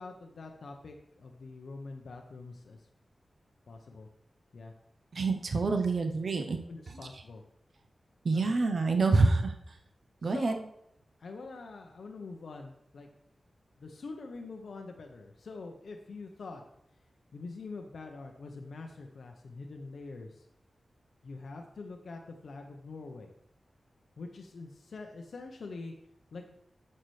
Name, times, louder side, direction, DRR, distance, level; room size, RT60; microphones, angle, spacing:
voice 1, 0.0-2.8 3.7-4.1 4.5-4.7 5.6-5.7 6.7-7.4 8.3-8.4 10.3-10.6 11.2-13.1 13.8-16.6 17.3-20.4 21.2-23.3 24.2-25.9 26.3-26.5, left 3 dB, 80° left, 3 dB, 0.7 m, -44 dB
voice 2, 5.1-6.6 8.2-9.5 10.2-10.6, right 3 dB, 60° right, 5 dB, 0.7 m, -27 dB
8.4 x 6.6 x 3.2 m, 0.77 s
wide cardioid pair, 120°, 0 cm